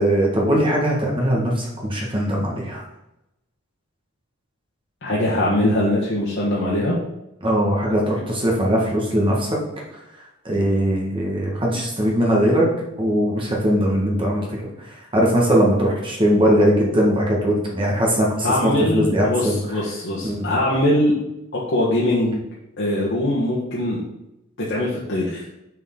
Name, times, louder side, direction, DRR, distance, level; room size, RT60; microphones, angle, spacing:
voice 1, 0.0-2.8 7.4-9.5 10.4-12.7 13.0-14.5 15.1-19.6 20.2-20.5, equal, 25° right, -2 dB, 1.5 m, -20 dB
voice 2, 5.0-7.0 18.4-21.1 21.5-22.4 22.8-24.0 24.6-25.4, left 1 dB, 55° left, -6 dB, 1.4 m, -21 dB
6.7 x 6.4 x 3.8 m, 0.88 s
head